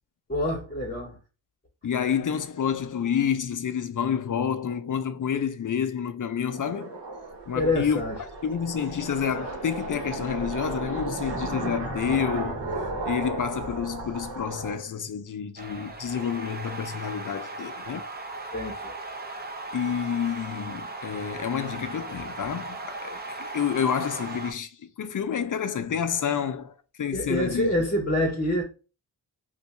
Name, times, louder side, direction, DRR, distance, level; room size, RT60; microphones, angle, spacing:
voice 1, 0.3-1.2 7.5-8.1 18.5-18.9 27.1-28.6, left 1 dB, 20° left, 0.8 m, -26 dB
voice 2, 1.8-7.0 7.5-12.7 13.0-18.1 19.7-27.7, left 8 dB, 45° left, 0.5 m, -29 dB
sound 1, 6.5-14.7, right 2 dB, 65° right, 1.1 m, -34 dB
sound 2, 15.6-24.5, right 2 dB, 20° right, 0.6 m, -38 dB
2.6 x 2.3 x 4.0 m
cardioid pair, 60°, 46 cm